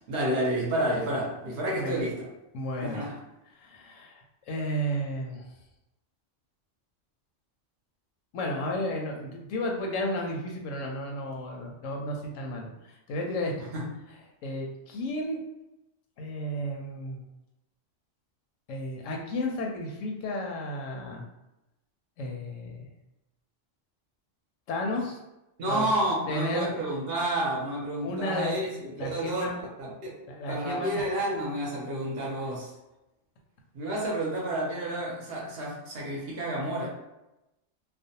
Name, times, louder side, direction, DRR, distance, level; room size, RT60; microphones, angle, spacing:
voice 1, 0.1-2.3 2.8-3.1 13.7-13.9 25.6-29.5 29.8-30.1 30.5-32.7 33.7-36.9, right 1 dB, 60° right, -3 dB, 0.8 m, -30 dB
voice 2, 1.7-2.1 2.5-3.0 3.6-5.5 8.3-13.5 14.4-15.4 16.2-17.2 18.7-21.2 22.2-22.9 24.7-25.2 25.7-25.9 26.3-26.8 28.0-28.7 29.0-29.6 30.3-31.0 33.8-33.9, left 1 dB, 80° left, 0 dB, 0.9 m, -33 dB
2.4 x 2.1 x 2.7 m, 0.93 s
omnidirectional pair, 1.3 m